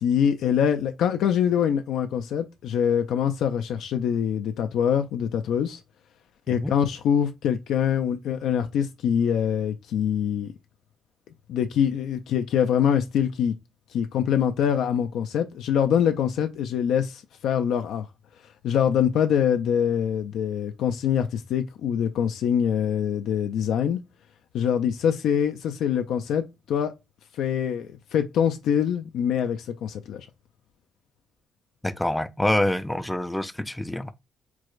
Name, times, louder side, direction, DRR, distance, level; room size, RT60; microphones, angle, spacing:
voice 1, 0.0-5.8 6.5-10.5 11.5-13.5 13.9-18.1 18.6-24.0 24.5-26.9 27.4-30.3, left 8 dB, 80° left, 0.4 m, -24 dB
voice 2, 31.8-34.1, left 1 dB, 10° left, 0.4 m, -26 dB
4.6 x 2.1 x 2.4 m
cardioid pair, 90°, 0 cm